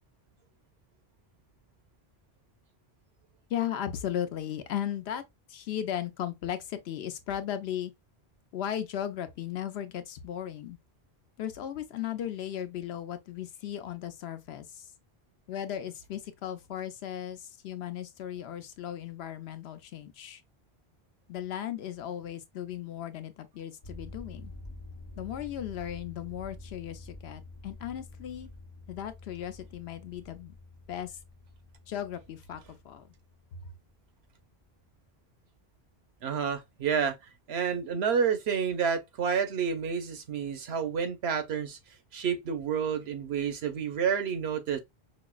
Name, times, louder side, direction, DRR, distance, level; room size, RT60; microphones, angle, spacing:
voice 1, 3.5-5.2 5.5-7.9 8.5-10.8 11.4-14.9 15.5-20.4 21.3-24.5 25.2-28.5 28.9-30.6 30.9-31.2 31.9-33.1 33.5-33.6, left 10 dB, 90° left, 0.8 m, -36 dB
sound 1, 23.8-34.6, left 2 dB, 70° left, 1.1 m, -48 dB
voice 2, 36.2-37.2 37.5-41.8 42.1-44.8, right 7 dB, 90° right, 1.0 m, -29 dB
5.1 x 2.0 x 2.3 m
omnidirectional pair, 1.0 m